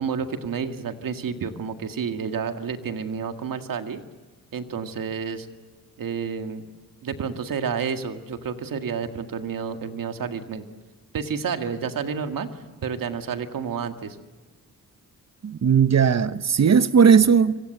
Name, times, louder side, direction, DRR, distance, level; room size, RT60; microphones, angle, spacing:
voice 1, 0.0-4.0 4.5-5.5 6.0-6.7 7.0-10.7 11.1-14.2, right 6 dB, 85° right, 2.0 m, -30 dB
voice 2, 15.4-17.6, right 6 dB, 50° right, 1.0 m, -17 dB
26.0 x 25.5 x 7.9 m
cardioid pair, 80°, 33 cm